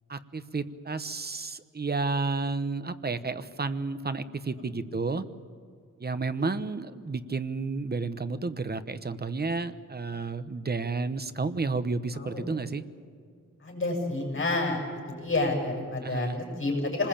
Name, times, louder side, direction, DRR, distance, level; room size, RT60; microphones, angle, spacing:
voice 1, 0.1-5.2 6.0-12.8 16.0-16.4, right 3 dB, 30° right, 12 dB, 1.0 m, -31 dB
voice 2, 12.1-12.5 13.6-14.8 15.1-17.1, left 2 dB, 40° left, 0 dB, 7.4 m, -29 dB
26.0 x 20.5 x 8.8 m, 2.2 s
wide cardioid pair, 155°, 32 cm